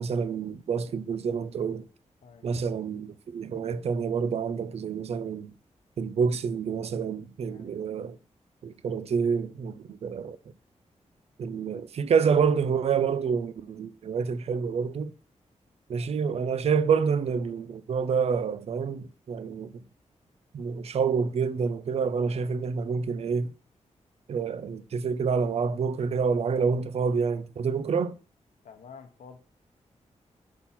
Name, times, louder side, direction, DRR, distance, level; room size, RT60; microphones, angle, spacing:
voice 1, 0.0-1.8 2.4-5.5 6.0-8.2 8.6-10.4 11.4-15.1 15.9-19.7 20.5-23.5 24.3-28.2, right 6 dB, 55° right, 0.4 m, -28 dB
voice 2, 28.6-29.4, left 6 dB, 85° left, 0.7 m, -49 dB
4.3 x 4.2 x 5.6 m
wide cardioid pair, 175°, 12 cm